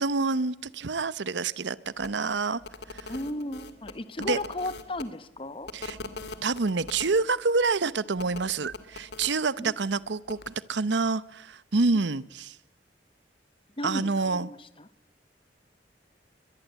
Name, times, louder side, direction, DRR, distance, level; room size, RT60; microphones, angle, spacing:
voice 1, 0.0-2.6 2.9-3.1 4.2-4.4 5.7-6.0 6.4-12.6 13.8-14.5, right 4 dB, 75° right, 18 dB, 0.8 m, -27 dB
sound 1, 2.0-2.1 2.6-5.0 5.7-7.2 8.2-9.3 10.3-10.5, left 3 dB, 65° left, 2.3 m, -41 dB
voice 2, 3.1-5.7 9.6-9.7 13.8-14.9, left 1 dB, 30° left, 14 dB, 1.2 m, -35 dB
22.5 x 22.0 x 8.1 m, 0.78 s
head